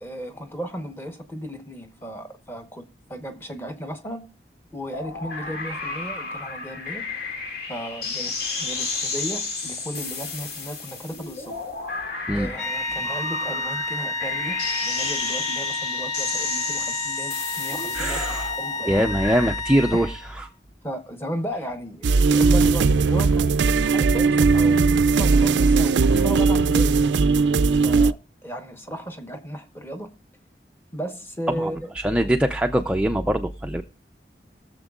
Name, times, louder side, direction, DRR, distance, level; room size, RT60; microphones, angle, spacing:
voice 1, 0.0-4.4 4.7-7.1 7.7-11.6 12.3-18.2 18.6-19.1 19.9-20.1 20.8-23.5 23.8-27.0 27.8-30.1 30.9-31.9, equal, 15° left, 1.0 m, -35 dB
sound 1, 4.9-19.6, left 4 dB, 60° left, 2.3 m, -32 dB
sound 2, 12.6-20.4, left 2 dB, 40° left, 1.1 m, -30 dB
voice 2, 17.9-18.5 18.9-20.1 20.4-20.5 26.1-26.3 31.5-33.8, equal, 5° right, 0.4 m, -23 dB
sound 3, 22.0-28.1, right 4 dB, 85° right, 0.4 m, -18 dB
20.5 x 7.1 x 2.4 m
head